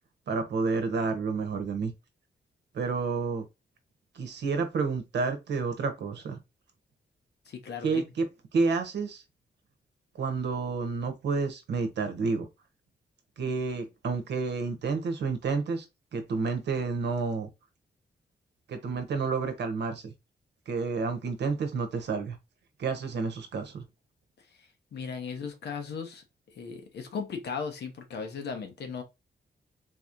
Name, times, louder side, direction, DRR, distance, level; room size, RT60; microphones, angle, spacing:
voice 1, 0.3-1.9 2.7-3.4 4.1-6.4 7.8-8.3 8.5-9.2 10.2-12.5 13.4-15.9 16.1-17.5 18.7-20.1 20.7-22.4 22.8-23.8, right 4 dB, 85° right, 0.9 m, -30 dB
voice 2, 7.5-8.0 24.9-26.2 26.6-29.0, left 5 dB, 80° left, 1.0 m, -36 dB
4.0 x 2.9 x 2.5 m
wide cardioid pair, 175°, 17 cm